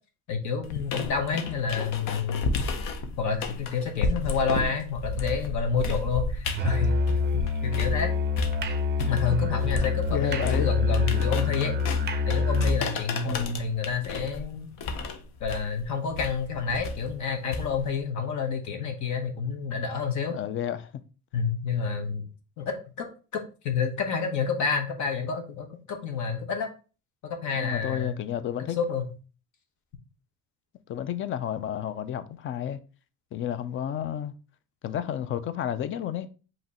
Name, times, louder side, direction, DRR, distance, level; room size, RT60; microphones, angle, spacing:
voice 1, 0.3-2.5 3.2-8.1 9.1-11.8 12.2-14.7 15.4-20.4 21.3-22.2 22.6-23.1 23.3-26.7 27.2-28.2 28.8-29.1, left 5 dB, 60° left, 1.0 m, -29 dB
sound 1, 0.6-8.0 8.4-18.0, left 3 dB, 80° left, 0.8 m, -33 dB
Musical instrument, 6.5-12.9, left 4 dB, 30° right, 0.5 m, -26 dB
voice 2, 10.1-10.7 13.3-13.7 20.3-20.9 27.6-28.8 30.9-32.8 33.3-34.3 34.8-36.3, left 10 dB, 40° left, 0.4 m, -31 dB
5.2 x 2.9 x 2.8 m
cardioid pair, 150°, 33 cm